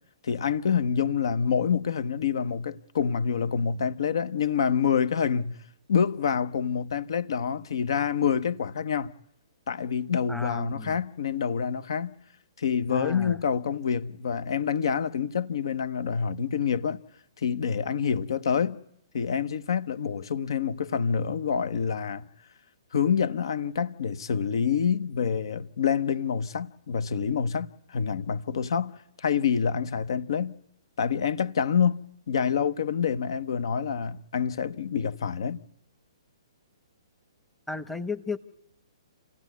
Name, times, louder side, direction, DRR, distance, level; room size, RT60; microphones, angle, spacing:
voice 1, 0.2-5.6 5.9-9.1 9.7-12.1 12.6-17.0 17.4-18.8 19.1-22.2 22.9-30.5 31.0-32.0 32.3-35.6, left 7 dB, 60° left, 0.8 m, -27 dB
voice 2, 10.3-11.0 12.9-13.4 37.7-38.4, left 3 dB, 5° left, 0.9 m, -34 dB
28.0 x 16.5 x 9.3 m
figure-of-eight pair, 125°, 3 cm